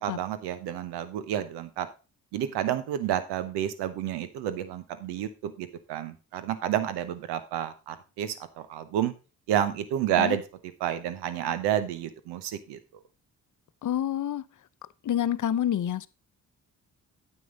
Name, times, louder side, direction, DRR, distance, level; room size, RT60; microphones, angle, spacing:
voice 1, 0.0-1.9 2.3-9.1 9.5-10.4 10.8-12.8, right 10 dB, 85° right, 1.0 m, -30 dB
voice 2, 13.8-14.4 15.0-16.1, left 10 dB, 50° left, 0.7 m, -28 dB
9.4 x 7.7 x 3.8 m
hypercardioid pair, 40°, 39 cm